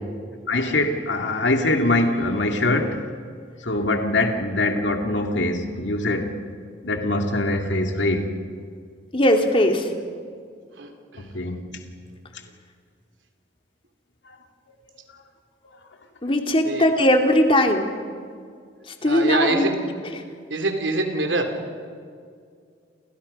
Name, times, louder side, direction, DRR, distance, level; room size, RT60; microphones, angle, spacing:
voice 1, 0.5-3.0 3.6-6.5 6.8-8.3 11.2-11.7, left 2 dB, 75° left, 2.3 m, -23 dB
voice 2, 9.1-9.9 16.2-17.9 18.9-19.7, left 1 dB, 30° left, 2.6 m, -19 dB
voice 3, 10.7-11.3 12.1-12.2 16.6-16.9 19.0-19.8 20.5-21.7, right 2 dB, 80° right, 3.4 m, -25 dB
29.0 x 29.0 x 5.5 m
head